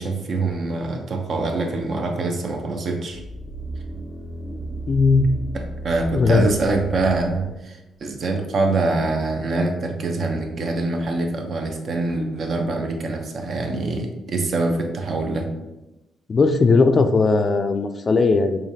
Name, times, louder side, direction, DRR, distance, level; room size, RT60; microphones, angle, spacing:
voice 1, 0.0-3.2 5.5-15.5, right 3 dB, 55° right, 3 dB, 0.6 m, -24 dB
sound 1, 3.2-7.5 8.0-8.1, right 2 dB, 10° right, 0.7 m, -33 dB
voice 2, 4.9-5.3 6.1-6.5 16.3-18.6, left 4 dB, 40° left, 8 dB, 0.3 m, -17 dB
4.9 x 2.7 x 2.7 m, 1.0 s
cardioid pair, 90°, 0 cm